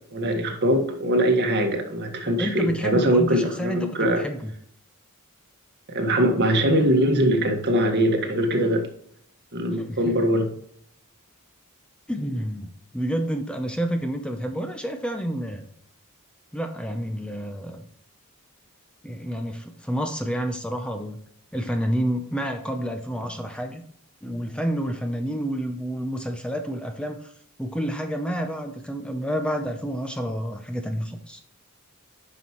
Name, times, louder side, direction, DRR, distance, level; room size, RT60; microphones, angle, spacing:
voice 1, 0.1-4.2 5.9-8.9 9.5-10.5, right 1 dB, 50° right, 3 dB, 1.6 m, -22 dB
voice 2, 2.4-4.5 9.7-10.2 12.1-15.7 16.5-17.8 19.0-21.2 21.5-23.8 24.2-27.3 27.6-31.4, equal, 5° left, 5 dB, 0.6 m, -29 dB
9.4 x 6.0 x 3.1 m, 0.64 s
head